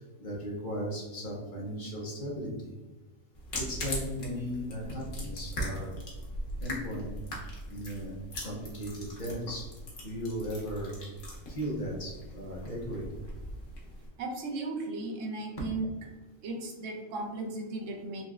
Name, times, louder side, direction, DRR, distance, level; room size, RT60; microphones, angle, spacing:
voice 1, 0.2-2.7 3.6-5.9 6.6-7.2 7.7-8.2 8.4-9.7 10.0-10.9 11.5-13.1, equal, 40° left, -4 dB, 1.0 m, -36 dB
sound 1, 3.3-14.1, equal, 80° left, 1.3 m, -40 dB
voice 2, 14.2-15.9 16.4-18.2, right 2 dB, 90° right, 3 dB, 1.0 m, -36 dB
4.0 x 3.0 x 2.3 m, 1.2 s
omnidirectional pair, 1.3 m